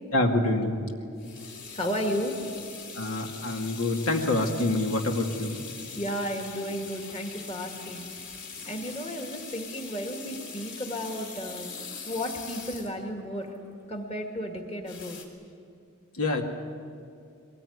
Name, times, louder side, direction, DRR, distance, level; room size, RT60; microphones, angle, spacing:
voice 1, 0.1-0.8 3.0-5.6 16.2-16.4, left 2 dB, 80° left, 2 dB, 2.4 m, -26 dB
sound 1, 1.2-13.6 14.9-15.2, left 5 dB, 55° left, 3.7 m, -42 dB
voice 2, 1.7-2.4 5.9-8.0 8.7-11.8 12.1-13.5 13.9-15.2, equal, 25° left, 2 dB, 2.1 m, -33 dB
23.0 x 20.0 x 9.6 m, 2.4 s
head